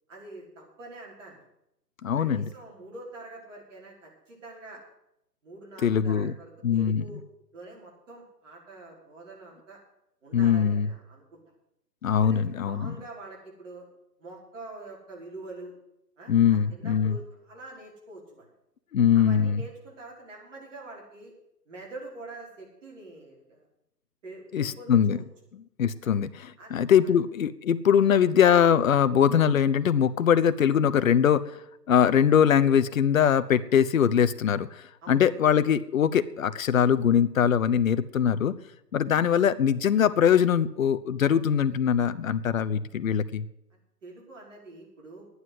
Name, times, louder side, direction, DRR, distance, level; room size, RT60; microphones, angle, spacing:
voice 1, 0.1-1.5 2.1-4.8 5.4-7.2 7.5-9.8 10.2-11.4 12.2-13.9 14.2-15.7 16.2-18.5 19.1-21.3 21.7-23.7 24.2-25.2 26.0-26.2 26.6-26.7 27.0-27.1 35.0-35.3 39.1-39.3 43.7-45.3, right 2 dB, 50° right, -1 dB, 5.1 m, -45 dB
voice 2, 2.0-2.5 5.8-6.3 6.6-7.0 10.3-10.9 12.0-13.0 16.3-17.2 18.9-19.6 24.5-25.2 25.5-31.5 31.9-38.5 38.9-43.5, left 8 dB, 55° left, 13 dB, 0.8 m, -22 dB
11.5 x 9.7 x 8.1 m, 0.80 s
hypercardioid pair, 150°, 49 cm